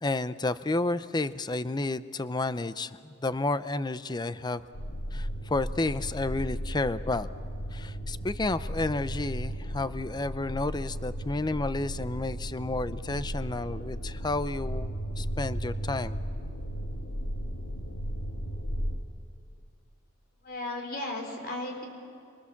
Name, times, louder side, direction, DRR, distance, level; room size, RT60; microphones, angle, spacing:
voice 1, 0.0-4.6 5.1-7.3 7.7-16.2, left 2 dB, 20° left, 14 dB, 0.5 m, -31 dB
sound 1, 4.7-19.0, equal, 75° left, 2.1 m, -35 dB
voice 2, 20.4-21.9, left 1 dB, 45° left, 3 dB, 4.2 m, -35 dB
27.5 x 24.5 x 7.2 m, 2.4 s
head